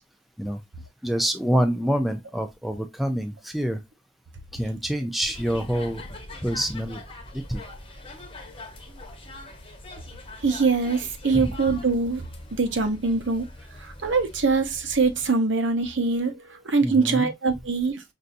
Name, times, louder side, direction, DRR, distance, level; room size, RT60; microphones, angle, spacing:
voice 1, 1.0-3.8 4.5-6.0 6.4-7.0 7.3-7.6 11.3-11.5 16.8-17.3, equal, ahead, 0.4 m, -26 dB
sound 1, 5.3-15.3, left 2 dB, 25° left, 1.0 m, -42 dB
voice 2, 10.4-13.5 13.8-18.0, right 4 dB, 65° right, 0.8 m, -23 dB
5.6 x 2.6 x 2.5 m
head